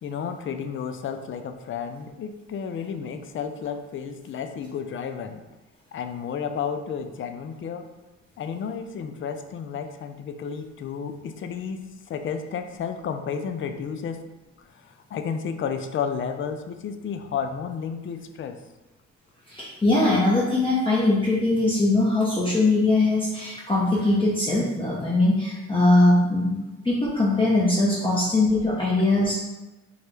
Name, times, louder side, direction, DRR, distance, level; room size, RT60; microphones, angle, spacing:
voice 1, 0.0-5.4 5.9-7.9 8.4-14.2 14.8-18.6, left 6 dB, 45° left, 8 dB, 0.4 m, -32 dB
voice 2, 19.5-26.6 26.8-29.5, left 2 dB, 15° left, -7 dB, 0.8 m, -21 dB
4.5 x 2.2 x 3.2 m, 1.1 s
cardioid pair, 90°, 30 cm